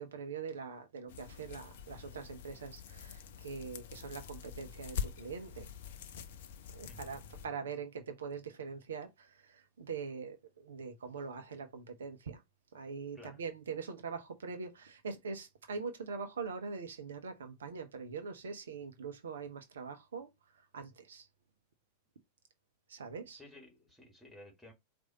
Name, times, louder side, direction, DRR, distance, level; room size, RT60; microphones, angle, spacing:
voice 1, 0.0-5.7 6.7-12.4 12.7-20.3 20.7-21.3 22.9-23.4, right 5 dB, 65° right, 0.7 m, -43 dB
sound 1, 1.1-7.5, left 7 dB, 55° left, 0.6 m, -45 dB
voice 2, 6.9-7.6 13.1-13.4 23.3-24.7, left 1 dB, 5° left, 1.9 m, -55 dB
4.7 x 2.6 x 4.0 m
figure-of-eight pair, 90°, 0 cm